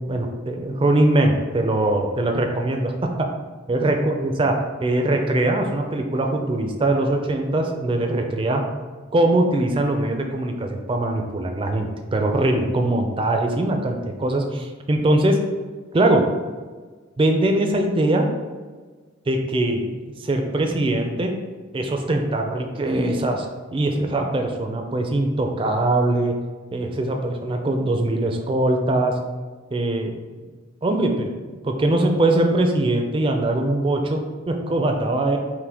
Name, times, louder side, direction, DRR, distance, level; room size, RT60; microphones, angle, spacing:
voice 1, 0.1-3.3 3.7-4.6 4.8-8.6 9.1-15.4 15.9-16.4 17.2-18.3 19.3-19.9 20.2-21.3 21.7-23.5 23.7-26.3 26.7-29.1 29.7-30.1 30.8-34.2 34.5-35.4, right 1 dB, 25° right, 3 dB, 0.4 m, -21 dB
5.7 x 2.1 x 3.5 m, 1.4 s
head